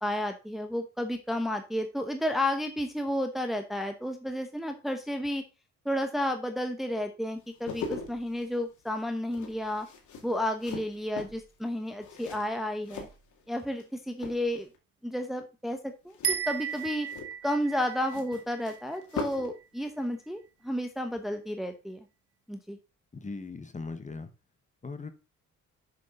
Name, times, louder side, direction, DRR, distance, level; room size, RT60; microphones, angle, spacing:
voice 1, 0.0-5.4 5.8-9.9 10.2-13.1 13.5-14.7 15.0-17.1 17.4-22.1 22.5-22.8, left 1 dB, ahead, 5 dB, 0.9 m, -32 dB
sound 1, 7.4-13.9 14.1-14.8 16.1-19.6 19.8-20.0, left 4 dB, 75° left, 2.1 m, -42 dB
sound 2, 16.2-19.6, right 7 dB, 55° right, 1.0 m, -35 dB
voice 2, 23.1-24.3 24.8-25.1, left 3 dB, 25° left, 9 dB, 1.2 m, -39 dB
6.7 x 6.5 x 3.8 m, 0.29 s
cardioid pair, 90°, 30 cm